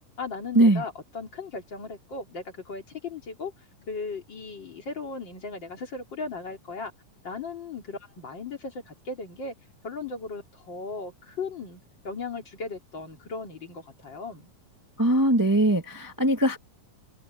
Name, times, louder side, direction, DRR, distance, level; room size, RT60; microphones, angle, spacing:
voice 1, 0.2-3.5 3.9-6.9 7.2-9.5 9.8-14.5, left 4 dB, 35° left, 3.4 m, -37 dB
voice 2, 15.0-16.6, right 1 dB, 15° right, 0.6 m, -21 dB
omnidirectional pair, 3.9 m